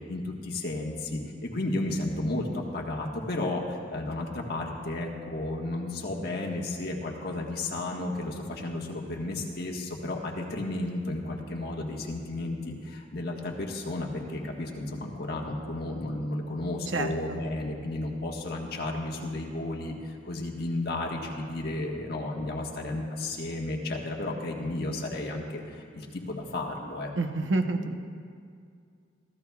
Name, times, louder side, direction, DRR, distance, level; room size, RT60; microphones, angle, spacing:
voice 1, 0.1-27.1, left 2 dB, 55° left, 0 dB, 1.5 m, -33 dB
voice 2, 16.9-17.4 27.1-28.0, right 2 dB, 80° right, 6 dB, 0.9 m, -29 dB
23.5 x 14.0 x 2.4 m, 2.3 s
head